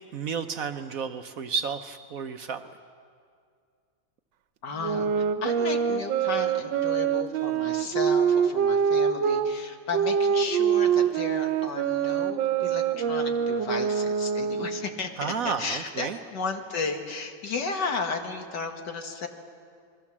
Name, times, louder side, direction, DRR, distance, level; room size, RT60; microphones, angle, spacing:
voice 1, 0.1-2.6 15.2-16.2, right 6 dB, 60° right, 7 dB, 1.1 m, -31 dB
voice 2, 4.6-19.3, left 4 dB, 70° left, 4 dB, 2.3 m, -34 dB
sound 1, 4.8-9.5 9.9-14.9, right 7 dB, 85° right, 1.5 m, -25 dB
27.5 x 21.5 x 7.3 m, 2.2 s
omnidirectional pair, 2.0 m